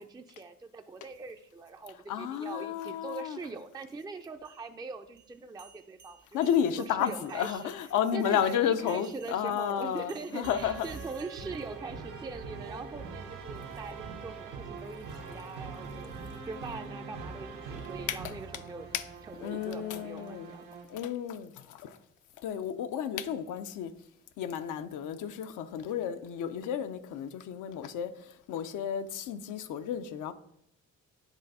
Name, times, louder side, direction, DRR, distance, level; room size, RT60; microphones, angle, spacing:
voice 1, 0.0-6.4 6.9-7.7 8.1-16.1 16.4-18.9 19.3-20.7, right 4 dB, 15° right, 0.4 m, -42 dB
voice 2, 2.1-3.4 6.3-10.9 18.1-18.3 18.9-19.1 19.4-20.5 20.9-22.0 22.4-23.9 24.4-30.3, left 9 dB, 80° left, 0.6 m, -32 dB
sound 1, 4.3-8.0 8.9-12.1, right 7 dB, 65° right, 1.2 m, -58 dB
sound 2, 10.4-20.9, right 4 dB, 90° right, 1.2 m, -43 dB
8.2 x 3.4 x 5.3 m
cardioid pair, 90°, 30 cm